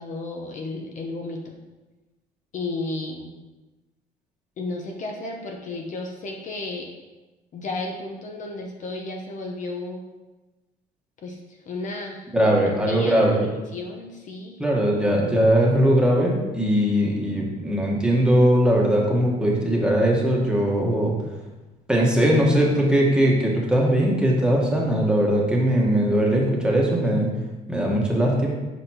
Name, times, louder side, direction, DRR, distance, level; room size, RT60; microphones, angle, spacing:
voice 1, 0.0-1.6 2.5-3.3 4.6-6.9 7.5-10.0 11.2-11.4 11.7-12.5 12.8-14.6, left 2 dB, 50° left, 1 dB, 0.9 m, -33 dB
voice 2, 12.3-13.5 14.6-21.1 21.9-27.3 27.7-28.5, right 1 dB, 5° right, -3 dB, 1.3 m, -20 dB
6.6 x 5.0 x 2.9 m, 1.1 s
cardioid pair, 110°, 17 cm